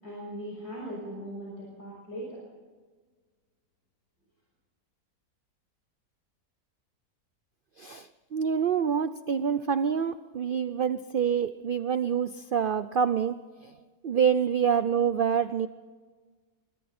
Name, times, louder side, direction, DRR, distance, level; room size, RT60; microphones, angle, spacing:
voice 1, 0.0-2.4, right 1 dB, 75° left, -4 dB, 7.2 m, -39 dB
voice 2, 7.8-13.4 13.6-13.7 14.0-15.7, right 7 dB, 55° right, 12 dB, 0.6 m, -26 dB
25.0 x 25.0 x 4.3 m, 1.4 s
omnidirectional pair, 1.7 m